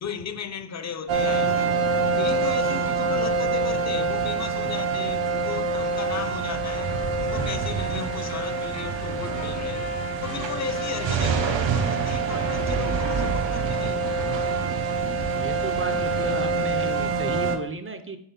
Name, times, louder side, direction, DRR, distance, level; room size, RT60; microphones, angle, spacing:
voice 1, 0.0-1.8 2.2-9.9 10.2-14.1, left 6 dB, 40° left, 0.5 m, -35 dB
sound 1, 1.1-17.6, right 4 dB, 80° right, 0.9 m, -25 dB
Trumpet, 6.8-14.8, left 5 dB, 55° left, 0.9 m, -42 dB
voice 2, 15.3-18.2, right 3 dB, 30° right, 0.5 m, -34 dB
5.6 x 4.3 x 5.6 m
wide cardioid pair, 165°, 44 cm